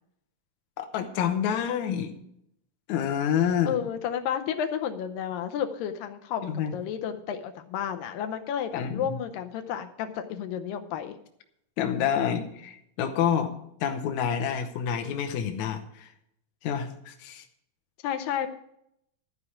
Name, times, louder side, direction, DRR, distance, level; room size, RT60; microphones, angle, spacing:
voice 1, 0.8-2.1 2.9-3.8 6.4-6.8 8.7-9.2 11.8-13.5 13.8-16.1 16.6-17.5, left 8 dB, 70° left, 6 dB, 2.1 m, -28 dB
voice 2, 3.6-11.2 18.0-18.5, left 9 dB, 85° left, 7 dB, 2.4 m, -31 dB
12.5 x 4.9 x 8.5 m, 0.75 s
omnidirectional pair, 3.9 m